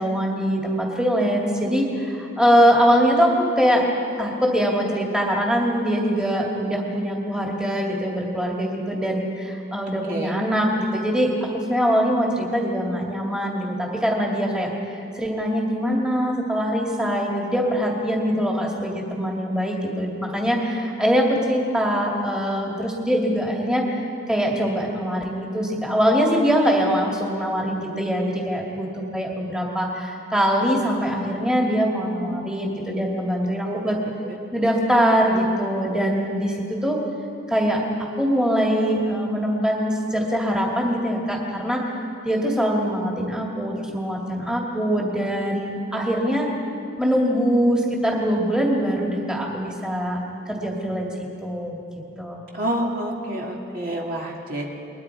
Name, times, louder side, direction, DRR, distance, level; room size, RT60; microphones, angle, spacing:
voice 1, 0.0-3.8 4.2-24.0 24.3-34.0 34.5-37.0 37.5-41.8 42.2-46.5 47.0-50.2 50.5-51.1 51.4-51.8 52.2-52.4, equal, 5° right, -2 dB, 2.3 m, -23 dB
voice 2, 52.5-54.7, right 1 dB, 45° right, -2 dB, 2.7 m, -28 dB
29.0 x 21.5 x 4.8 m, 2.6 s
head